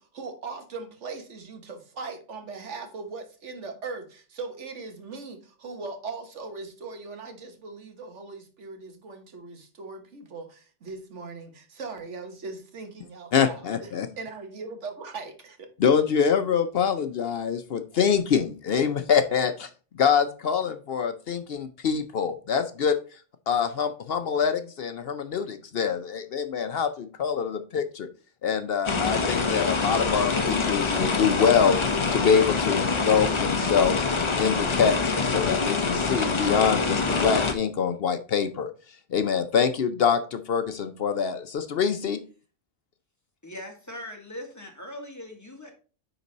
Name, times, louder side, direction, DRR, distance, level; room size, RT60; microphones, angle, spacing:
voice 1, 0.0-13.9 14.2-15.7, right 4 dB, 85° right, 1.6 m, -39 dB
voice 2, 13.3-14.1 15.8-19.7 19.9-23.2 23.5-28.1 28.4-31.8 32.1-34.0 34.4-38.7 39.1-42.2, left 7 dB, 60° left, 0.8 m, -25 dB
sound 1, 28.8-37.5, left 4 dB, 30° left, 0.7 m, -25 dB
voice 3, 43.4-45.7, left 1 dB, 15° left, 1.5 m, -40 dB
9.6 x 4.0 x 4.0 m
omnidirectional pair, 1.2 m